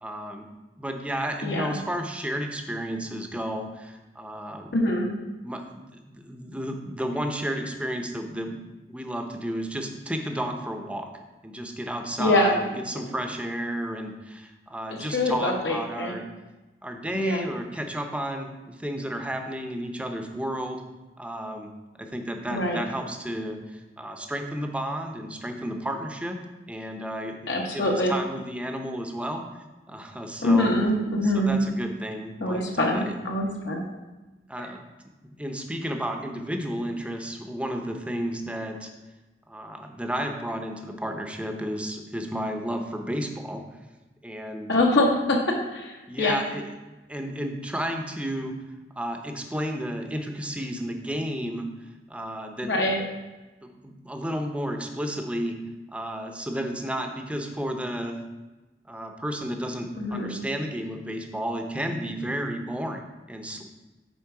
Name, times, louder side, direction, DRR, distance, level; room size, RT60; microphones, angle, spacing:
voice 1, 0.0-0.5 0.8-4.8 5.4-8.6 8.9-11.1 11.4-16.2 16.8-20.8 21.2-21.7 22.0-26.4 26.7-30.7 31.2-33.1 34.5-34.8 35.2-38.9 39.5-43.7 44.2-44.7 46.1-46.6 47.1-48.5 49.0-51.7 52.1-52.9 53.6-55.6 55.9-58.2 58.9-63.0 63.3-63.6, equal, 5° right, 4 dB, 0.6 m, -32 dB
voice 2, 1.4-1.8 4.7-5.1 12.2-12.6 15.1-16.1 17.1-17.5 22.5-22.8 27.5-28.2 30.4-31.6 32.4-33.8 34.6-34.7 44.7-46.4 52.6-53.0 60.0-60.4, left 1 dB, 70° left, 0 dB, 1.0 m, -24 dB
8.3 x 3.5 x 4.7 m, 1.1 s
head